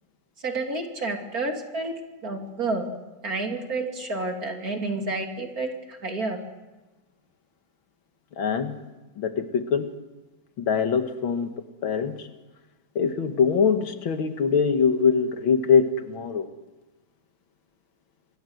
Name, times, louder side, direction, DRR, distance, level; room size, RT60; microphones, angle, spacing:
voice 1, 0.4-1.9 2.2-2.9 3.2-6.4, right 2 dB, 45° right, 3 dB, 3.1 m, -30 dB
voice 2, 8.4-8.8 9.2-9.9 10.6-11.5 11.8-12.3 13.0-16.5, left 6 dB, 80° left, 8 dB, 2.3 m, -23 dB
25.5 x 22.0 x 7.9 m, 1.1 s
omnidirectional pair, 2.2 m